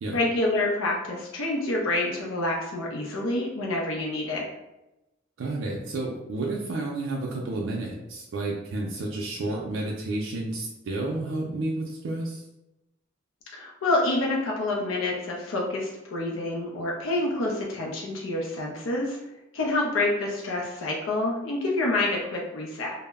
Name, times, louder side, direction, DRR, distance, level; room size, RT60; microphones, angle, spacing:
voice 1, 0.1-4.4 13.5-19.2 19.5-22.9, left 2 dB, 80° left, -2 dB, 0.5 m, -27 dB
voice 2, 5.4-12.4, right 2 dB, 75° right, -2 dB, 0.4 m, -31 dB
2.0 x 2.0 x 3.3 m, 0.95 s
head